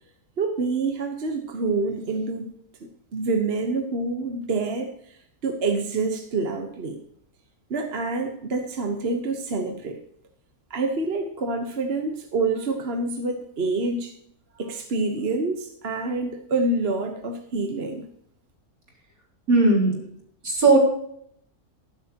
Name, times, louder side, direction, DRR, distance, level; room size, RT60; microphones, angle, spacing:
voice 1, 0.4-2.5 3.1-7.0 7.7-10.0 10.7-14.1 14.6-18.1, right 3 dB, 45° right, 4 dB, 1.3 m, -27 dB
voice 2, 19.5-19.9 20.4-20.8, right 3 dB, 70° right, -3 dB, 4.8 m, -17 dB
13.0 x 11.0 x 2.9 m, 0.68 s
omnidirectional pair, 1.6 m